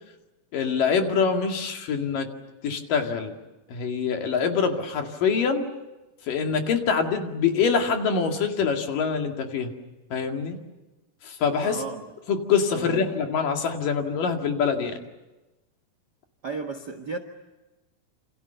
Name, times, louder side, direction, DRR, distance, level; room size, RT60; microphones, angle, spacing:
voice 1, 0.5-2.3 2.6-3.3 3.7-5.7 6.3-9.7 10.1-10.6 11.2-11.8 12.3-15.0, left 6 dB, 65° left, 3.8 m, -25 dB
voice 2, 11.6-12.1 12.7-13.1 16.4-17.2, right 4 dB, 45° right, 1.3 m, -34 dB
28.5 x 27.5 x 6.9 m
omnidirectional pair, 4.3 m